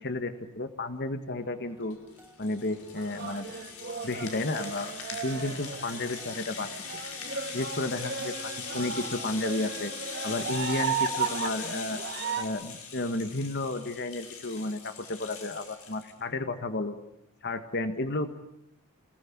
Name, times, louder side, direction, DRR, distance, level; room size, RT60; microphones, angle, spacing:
voice 1, 0.0-2.0 2.4-3.5 4.0-6.7 7.5-9.9 10.2-12.0 12.4-17.0 17.4-18.3, left 2 dB, 50° left, 9 dB, 1.7 m, -32 dB
sound 1, 1.3-12.4, equal, 10° right, 3.1 m, -55 dB
Rattle (instrument), 1.9-16.1, left 6 dB, 75° left, 5.5 m, -41 dB
sound 2, 3.0-12.4, right 5 dB, 50° right, 2.2 m, -35 dB
29.5 x 19.0 x 9.7 m, 0.77 s
head